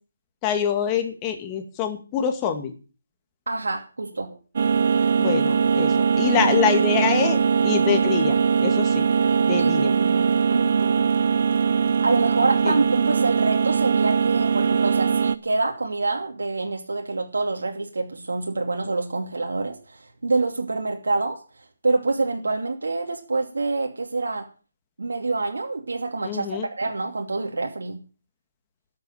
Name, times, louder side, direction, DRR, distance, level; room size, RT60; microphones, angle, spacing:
voice 1, 0.4-2.7 5.2-8.4 8.6-9.1 9.5-9.9 12.6-12.7 26.2-26.7, left 8 dB, 20° left, 6 dB, 2.3 m, -25 dB
voice 2, 3.5-4.4 9.6-11.0 12.0-21.4 21.8-24.5 25.0-28.0, right 3 dB, 80° right, 2 dB, 2.7 m, -26 dB
sound 1, 4.6-15.4, right 6 dB, 50° right, 0.9 m, -21 dB
13.0 x 7.7 x 9.2 m, 0.37 s
hypercardioid pair, 165°, 0 cm